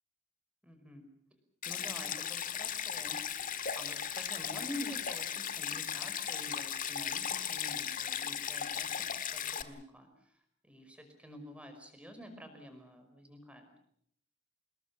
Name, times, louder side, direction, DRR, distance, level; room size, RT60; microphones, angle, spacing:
voice 1, 0.6-1.0 1.7-10.3 10.6-13.7, left 1 dB, 5° right, 6 dB, 5.3 m, -48 dB
Stream, 1.6-9.6, left 8 dB, 45° left, 1.7 m, -37 dB
27.0 x 21.0 x 7.3 m, 0.67 s
head